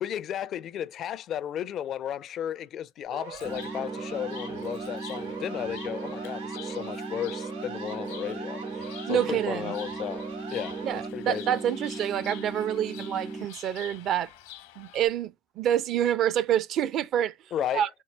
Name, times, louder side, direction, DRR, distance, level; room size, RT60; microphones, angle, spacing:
voice 1, 0.0-10.3 10.5-11.6 17.5-17.8, left 10 dB, 50° left, 0.5 m, -34 dB
Siren, 3.1-11.1, right 5 dB, 90° right, 3.2 m, -41 dB
Chirp tweet, 3.3-15.1, left 13 dB, 80° left, 1.0 m, -48 dB
sound 1, 3.4-13.5, right 3 dB, 15° right, 0.5 m, -38 dB
voice 2, 9.1-9.7 10.8-14.3 14.8-17.3 17.7-17.9, right 10 dB, 55° right, 0.7 m, -27 dB
5.6 x 2.1 x 3.2 m
hypercardioid pair, 80°, 0 cm